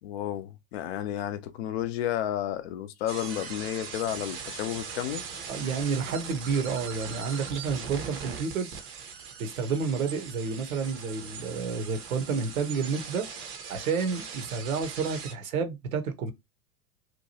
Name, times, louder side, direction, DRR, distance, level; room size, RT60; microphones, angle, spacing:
voice 1, 0.0-5.2, left 11 dB, 45° left, 0.5 m, -32 dB
sound 1, 3.1-15.3, right 6 dB, 30° right, 0.6 m, -40 dB
voice 2, 5.5-8.7 9.4-13.3 13.7-16.3, right 5 dB, 60° right, 0.8 m, -30 dB
2.9 x 2.2 x 2.7 m
figure-of-eight pair, 90°, 46 cm